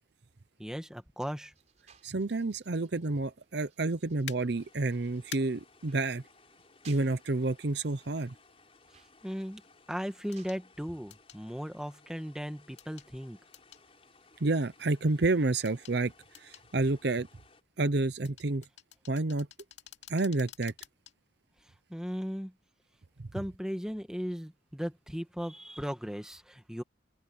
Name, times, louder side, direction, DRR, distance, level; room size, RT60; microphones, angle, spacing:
voice 1, 0.6-1.5 8.9-9.6 9.9-13.4 21.9-22.5 23.3-26.8, equal, 5° right, 1.6 m, -37 dB
sound 1, 1.5-10.6, right 7 dB, 35° right, 4.4 m, -63 dB
voice 2, 2.0-6.2 6.9-8.3 14.4-17.3 17.8-18.6 19.1-19.5 20.1-20.7, right 2 dB, 60° right, 0.7 m, -29 dB
sound 2, 4.3-4.4 5.3-5.4 7.4-7.5 10.3-10.6 11.1-11.4 12.8-13.1 13.5-13.8 15.6-16.0 16.3-16.7 18.2-21.1 21.6-21.7, left 9 dB, 65° left, 2.6 m, -47 dB
sound 3, 4.5-17.6, left 4 dB, 30° left, 4.9 m, -61 dB
open air
head